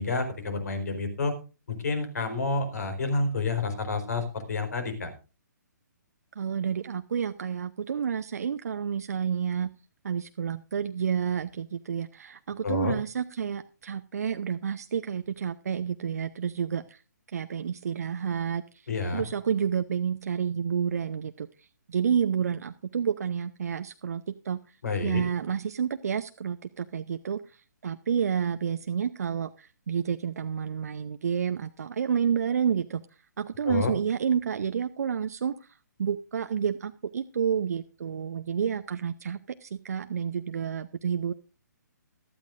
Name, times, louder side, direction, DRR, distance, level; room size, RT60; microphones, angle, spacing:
voice 1, 0.0-1.3 1.7-5.1 12.6-13.0 18.9-19.2 24.8-25.2 33.6-33.9, left 3 dB, 60° left, 8 dB, 4.1 m, -29 dB
voice 2, 6.4-9.7 10.0-17.0 17.3-21.5 21.9-24.6 25.0-33.0 33.4-35.7 36.0-41.3, right 7 dB, 55° right, 9 dB, 0.7 m, -30 dB
17.5 x 13.0 x 2.6 m, 0.32 s
figure-of-eight pair, 130°, 10 cm